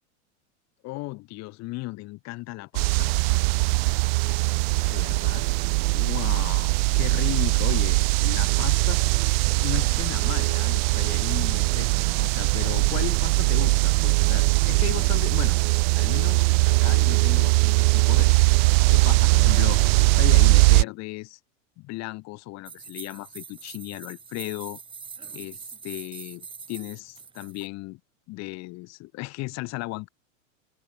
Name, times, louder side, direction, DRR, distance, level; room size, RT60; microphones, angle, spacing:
voice 1, 0.8-3.1 4.8-5.5 5.9-9.2 9.6-15.6 15.9-18.4 18.9-19.8 20.2-21.4 21.8-24.8 25.3-28.0 28.3-30.1, left 22 dB, 40° left, 1.4 m, -36 dB
sound 1, 2.7-20.8, right 29 dB, 50° right, 0.5 m, -21 dB
sound 2, 22.7-27.7, right 5 dB, 10° right, 1.3 m, -43 dB
open air
supercardioid pair, 130°, 40 cm